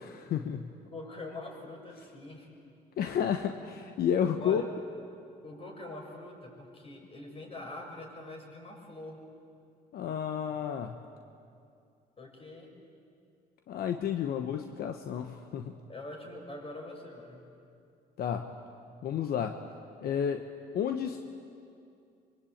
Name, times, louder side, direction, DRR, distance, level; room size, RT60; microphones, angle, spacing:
voice 1, 0.0-0.7 3.0-4.6 9.9-11.0 13.7-15.7 18.2-18.5 19.0-19.6 20.0-20.4 20.7-21.2, left 8 dB, 75° left, 6 dB, 1.1 m, -31 dB
voice 2, 0.9-2.5 4.4-4.7 5.4-9.2 12.2-12.8 15.9-17.4, left 2 dB, 35° left, 1 dB, 6.9 m, -44 dB
25.0 x 23.5 x 8.8 m, 2.5 s
cardioid pair, 85°, 16 cm